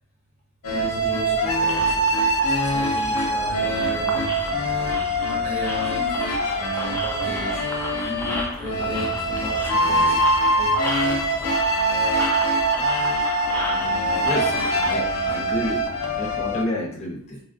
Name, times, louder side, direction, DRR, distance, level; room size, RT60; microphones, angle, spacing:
sound 1, 0.6-16.6, right 1 dB, 80° left, 0.6 m, -23 dB
sound 2, 0.6-16.7, equal, 80° right, 0.8 m, -40 dB
voice 1, 0.7-2.1 2.6-4.4 5.2-10.2 10.5-10.9 11.9-12.1, equal, 45° right, -7 dB, 0.8 m, -35 dB
sound 3, 1.6-14.9, left 1 dB, 10° left, 0.4 m, -34 dB
voice 2, 14.2-15.8 16.1-17.4, equal, 30° left, -4 dB, 0.8 m, -29 dB
3.3 x 2.3 x 2.5 m, 0.67 s
head